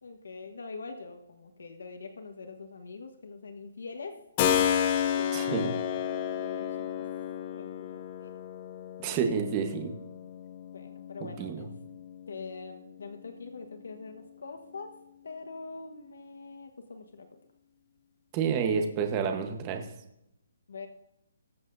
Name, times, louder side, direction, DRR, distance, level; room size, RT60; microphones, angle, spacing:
voice 1, 0.0-4.1 5.1-6.9 7.5-8.4 10.7-11.7 12.3-14.9 15.2-17.4 20.7-20.9, left 4 dB, 75° left, 6 dB, 1.2 m, -44 dB
Keyboard (musical), 4.4-13.0, left 9 dB, 20° left, 0.6 m, -32 dB
voice 2, 5.3-5.7 9.0-9.9 11.4-11.6 18.3-19.9, right 6 dB, 20° right, 4 dB, 1.1 m, -29 dB
20.5 x 7.6 x 2.6 m, 0.84 s
hypercardioid pair, 175°, 0 cm